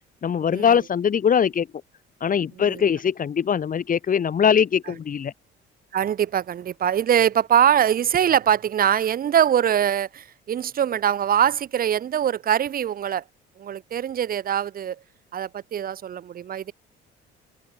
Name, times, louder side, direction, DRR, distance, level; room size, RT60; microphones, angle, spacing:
voice 1, 0.2-1.7 2.2-5.3, left 7 dB, 40° left, 2.1 m, -21 dB
voice 2, 5.9-13.2 13.6-15.0 15.3-16.7, right 9 dB, 45° right, 1.0 m, -22 dB
supercardioid pair, 90°, 21 cm